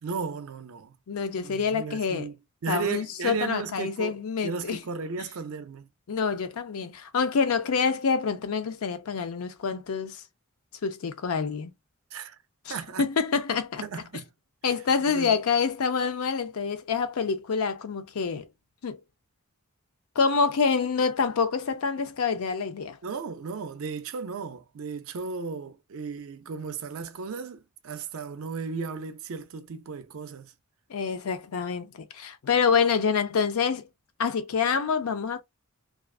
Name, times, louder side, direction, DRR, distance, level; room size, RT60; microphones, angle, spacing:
voice 1, 0.0-1.0 1.4-5.9 12.1-12.4 12.7-13.0 13.8-14.3 15.1-15.4 23.0-30.5, right 5 dB, 70° right, 0.5 m, -35 dB
voice 2, 1.1-2.3 2.7-4.8 6.1-10.2 10.8-11.7 12.7-13.8 14.6-18.5 18.8-19.0 20.2-23.0 30.9-33.9 34.2-35.4, left 5 dB, 85° left, 0.5 m, -27 dB
2.4 x 2.3 x 2.3 m
head